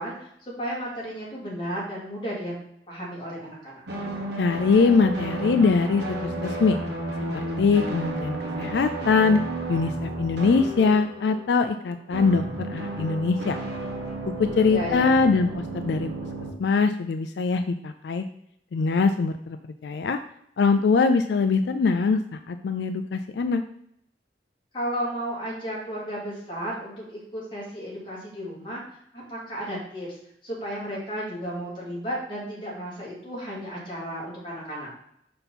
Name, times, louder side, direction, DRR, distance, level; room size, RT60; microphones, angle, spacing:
voice 1, 0.0-2.5 2.9-3.8 14.4-15.2 24.7-28.8 29.1-30.1 30.4-34.9, equal, 30° left, -5 dB, 2.7 m, -33 dB
sound 1, 3.9-11.8 12.1-16.5, right 2 dB, 80° right, 1.5 m, -32 dB
voice 2, 4.4-6.8 7.6-9.4 9.7-13.6 14.4-16.1 16.6-18.2 18.7-19.6 19.8-20.2 20.6-22.2 22.5-23.6, left 4 dB, 80° left, 8 dB, 0.4 m, -22 dB
5.7 x 5.4 x 4.1 m, 0.73 s
head